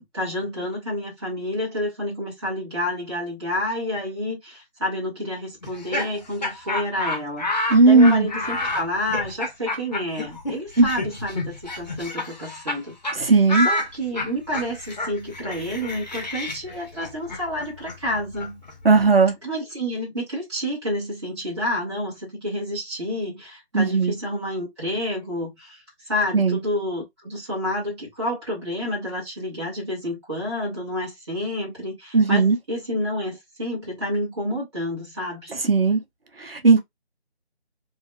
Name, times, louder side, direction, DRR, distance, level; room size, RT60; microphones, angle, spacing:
voice 1, 0.0-12.9 13.2-18.6 19.4-35.5, left 1 dB, 25° right, 1.4 m, -29 dB
Laughter, 5.6-12.8 13.0-13.2 13.5-19.2, left 1 dB, 40° left, 0.9 m, -30 dB
voice 2, 7.7-8.3 10.8-10.9 13.2-13.7 18.8-19.3 23.7-24.1 26.3-26.6 32.1-32.6 35.7-36.0 36.4-36.8, right 3 dB, 60° right, 0.9 m, -16 dB
4.0 x 2.4 x 2.3 m
figure-of-eight pair, 165°, 33 cm